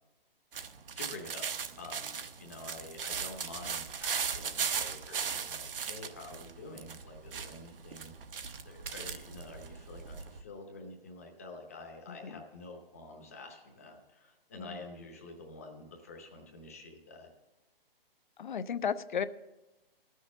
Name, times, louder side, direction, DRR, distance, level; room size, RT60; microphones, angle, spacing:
sound 1, 0.5-10.4, right 6 dB, 70° right, 0.8 m, -38 dB
voice 1, 1.0-1.5 1.8-17.3, left 2 dB, 15° left, 2 dB, 0.7 m, -48 dB
voice 2, 12.1-12.4 14.6-14.8 18.4-19.2, left 7 dB, 55° left, 14 dB, 0.6 m, -35 dB
13.5 x 6.4 x 6.8 m, 1.1 s
hypercardioid pair, 180°, 29 cm